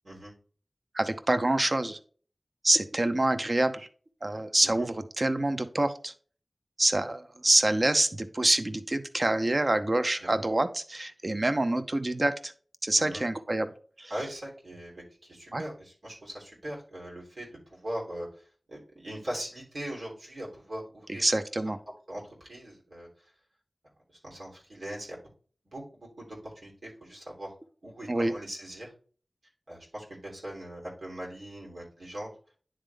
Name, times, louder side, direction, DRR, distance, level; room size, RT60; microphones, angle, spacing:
voice 1, 0.9-2.0 2.6-3.9 4.2-6.1 6.8-12.5 12.8-13.7 14.0-14.1 15.5-15.6 21.2-21.8 28.1-28.3, right 1 dB, 45° right, 9 dB, 0.7 m, -26 dB
voice 2, 14.1-18.3 18.7-21.2 22.1-23.3 24.2-25.2 25.6-27.5 27.8-28.9 29.7-32.3, right 1 dB, 90° right, -4 dB, 3.3 m, -40 dB
9.9 x 3.7 x 3.4 m, 0.43 s
wide cardioid pair, 50°, 0 cm